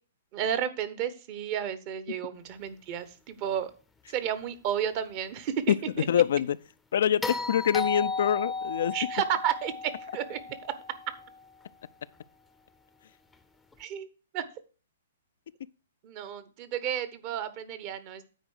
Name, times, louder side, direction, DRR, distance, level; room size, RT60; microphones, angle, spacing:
voice 1, 0.3-3.7 4.1-6.1 8.9-10.7 13.8-14.1 14.3-14.4 16.0-18.2, right 9 dB, 40° right, 1.0 m, -32 dB
voice 2, 6.1-6.6 6.9-9.0, left 9 dB, 60° left, 0.3 m, -25 dB
sound 1, 7.2-11.5 13.7-13.8, left 3 dB, 5° left, 0.6 m, -34 dB
9.1 x 4.5 x 6.4 m
figure-of-eight pair, 120°, 0 cm